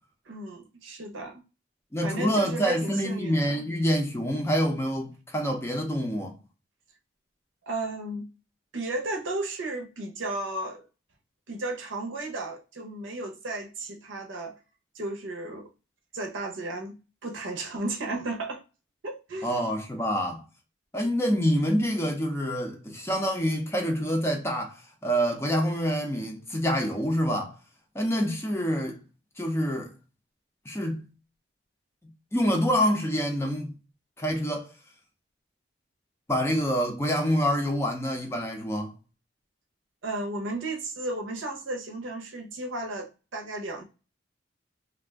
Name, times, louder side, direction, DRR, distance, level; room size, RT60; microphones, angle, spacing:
voice 1, 0.3-1.4 2.0-3.6 7.7-8.3 8.7-10.8 11.5-14.6 14.9-15.7 16.1-17.0 17.2-18.6 19.0-19.6 40.0-43.8, right 2 dB, 90° right, 0.7 m, -34 dB
voice 2, 1.9-6.4 19.4-20.5 20.9-27.6 27.9-29.0 29.4-29.9 30.7-31.0 32.3-33.7 34.2-34.7 36.3-38.9, equal, 15° left, 0.5 m, -26 dB
2.4 x 2.2 x 3.4 m
head